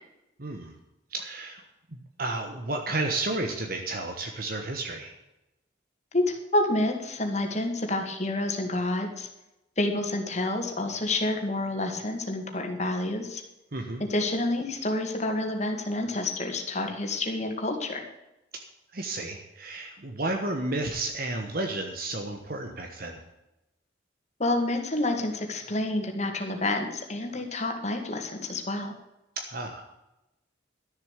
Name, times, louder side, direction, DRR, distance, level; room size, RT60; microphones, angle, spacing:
voice 1, 0.4-0.7 1.1-1.6 1.9-5.1 13.7-14.0 18.9-23.2 29.4-29.8, right 2 dB, 50° right, 4 dB, 1.3 m, -32 dB
voice 2, 6.5-9.3 9.8-13.4 14.1-18.0 24.4-28.9, left 2 dB, 35° left, 3 dB, 2.1 m, -28 dB
12.5 x 7.2 x 8.2 m, 0.95 s
head